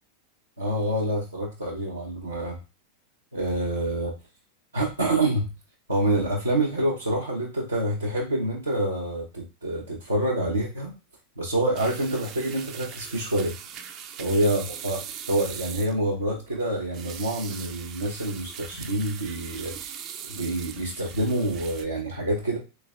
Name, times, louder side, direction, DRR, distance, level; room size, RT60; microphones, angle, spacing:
voice 1, 0.6-2.6 3.3-4.1 4.7-5.5 5.9-10.9 11.4-13.5 14.2-19.8 20.3-22.6, right 1 dB, 80° right, -4 dB, 0.7 m, -27 dB
sound 1, 11.8-21.9, right 8 dB, 35° right, 0.4 m, -40 dB
3.4 x 3.1 x 2.3 m, 0.30 s
figure-of-eight pair, 90°, 0 cm